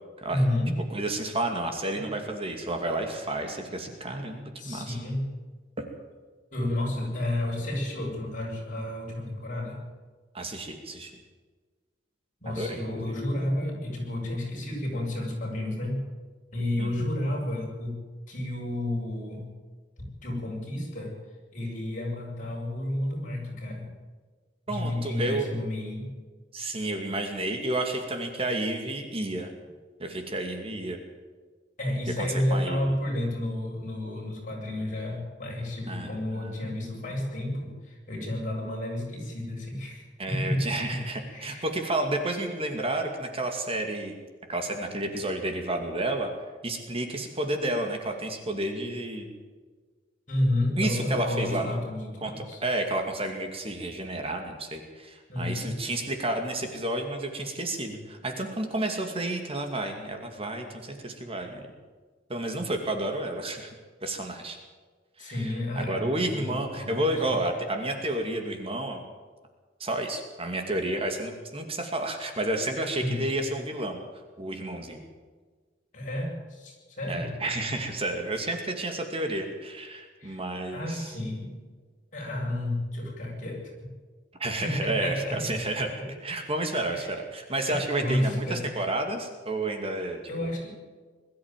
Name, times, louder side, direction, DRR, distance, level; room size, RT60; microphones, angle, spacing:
voice 1, 0.3-0.8 1.9-2.1 4.6-5.3 6.5-9.8 12.4-16.0 16.5-18.0 18.3-19.5 20.0-21.2 21.5-23.9 24.7-26.1 31.8-41.7 50.3-52.6 55.3-55.8 65.2-67.4 73.0-73.4 75.9-77.3 80.2-80.4 80.7-81.6 82.1-83.9 84.6-85.6 86.0-86.1 86.7-87.2 87.7-88.6 90.3-90.7, left 1 dB, 45° left, -2 dB, 7.8 m, -31 dB
voice 2, 0.9-5.0 10.3-11.1 12.5-13.0 16.8-16.9 24.7-25.5 26.5-29.5 30.0-31.0 32.2-32.8 35.9-36.5 40.2-44.2 44.5-46.3 46.6-49.3 50.8-51.8 52.2-52.3 52.6-61.6 62.3-63.7 64.0-64.6 65.2-69.0 69.8-74.0 74.4-75.0 77.1-81.1 84.4-85.9 86.2-90.5, right 1 dB, 30° right, 4 dB, 2.4 m, -31 dB
22.0 x 13.0 x 9.2 m, 1.4 s
head